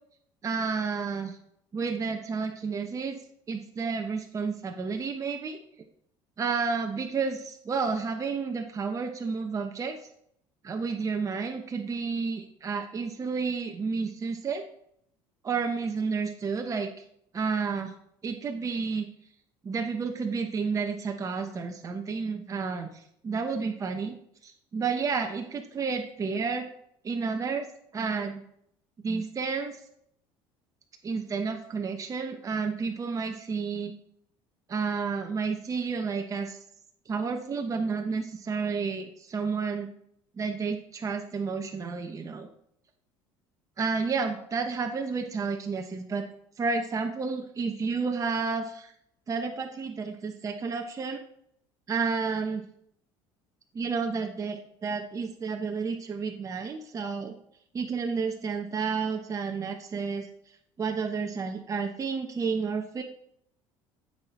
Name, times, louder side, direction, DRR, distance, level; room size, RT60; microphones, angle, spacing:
voice 1, 0.4-1.4 1.7-3.2 3.5-5.6 6.4-10.0 10.6-14.6 15.4-16.9 17.3-17.9 18.2-19.1 19.6-24.2 24.4-26.7 27.0-27.7 27.9-28.4 29.0-29.8 31.0-33.9 34.7-36.6 37.1-39.9 40.4-42.5 43.8-46.3 46.6-48.9 49.3-51.2 51.9-52.6 53.7-57.3 57.7-60.3 60.8-63.0, right 5 dB, 30° right, 4 dB, 1.0 m, -31 dB
15.0 x 5.8 x 4.4 m, 0.70 s
cardioid pair, 110°, 11 cm